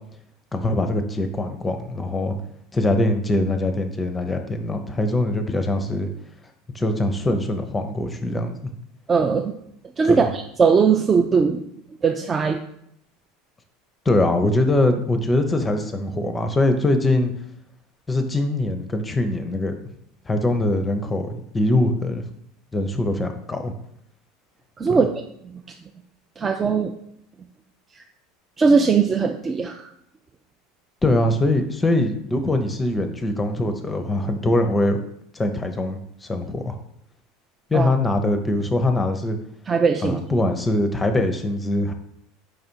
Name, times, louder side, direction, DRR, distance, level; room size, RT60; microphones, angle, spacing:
voice 1, 0.5-2.4 2.7-6.1 6.7-8.6 10.0-10.3 14.1-17.3 18.1-19.7 20.3-22.2 22.7-23.7 24.9-25.0 31.0-35.0 35.3-36.7 37.7-39.4 40.0-41.9, left 2 dB, 15° left, 7 dB, 0.6 m, -22 dB
voice 2, 9.1-9.6 10.0-11.6 12.0-12.6 24.8-25.1 26.4-26.9 28.6-29.9 37.7-37.9 39.7-40.2, right 5 dB, 30° right, 3 dB, 0.4 m, -19 dB
4.8 x 2.5 x 4.4 m, 0.73 s
hypercardioid pair, 90°, 0 cm